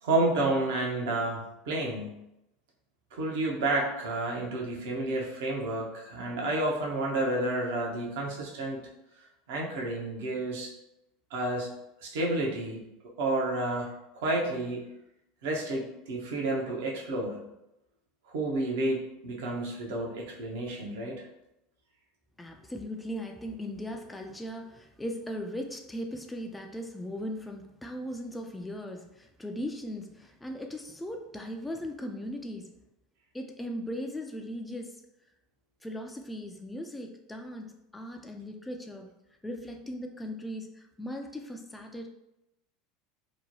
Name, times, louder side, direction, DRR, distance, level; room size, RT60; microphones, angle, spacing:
voice 1, 0.0-2.2 3.1-8.8 9.5-10.7 11.3-11.7 12.0-12.8 13.2-14.9 15.4-17.4 18.3-21.2, right 2 dB, 70° right, -1 dB, 0.7 m, -30 dB
voice 2, 22.4-32.7 33.3-35.0 35.8-39.1 39.4-42.1, equal, 10° left, 4 dB, 0.3 m, -38 dB
2.9 x 2.1 x 2.7 m, 0.88 s
hypercardioid pair, 80°, 0 cm